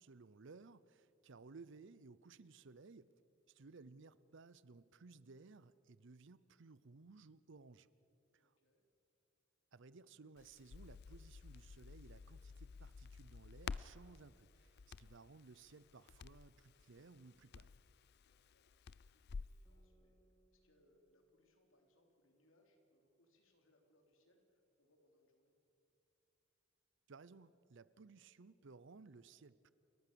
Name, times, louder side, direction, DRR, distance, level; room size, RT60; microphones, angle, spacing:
voice 1, 0.0-3.1 3.5-7.9 8.3-8.5 9.7-17.7 27.1-29.7, right 4 dB, 60° right, 18 dB, 0.6 m, -59 dB
voice 2, 8.4-8.9 18.1-20.2 20.5-25.5, left 1 dB, 70° left, 3 dB, 3.5 m, -75 dB
Crackle, 10.4-19.6, left 5 dB, 50° left, 0.4 m, -52 dB
Guitar, 19.6-24.6, right 2 dB, 20° left, 2.3 m, -80 dB
30.0 x 14.5 x 6.9 m, 2.7 s
head